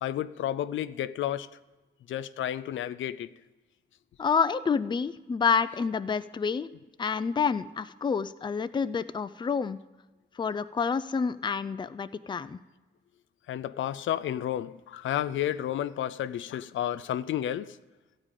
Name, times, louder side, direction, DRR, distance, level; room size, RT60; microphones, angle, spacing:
voice 1, 0.0-1.5 2.1-3.3 13.5-17.8, left 11 dB, 90° left, 0.4 m, -31 dB
voice 2, 4.2-6.7 7.0-9.8 10.4-12.6, left 6 dB, 25° left, 0.4 m, -28 dB
14.5 x 5.0 x 9.0 m
wide cardioid pair, 125°, 20 cm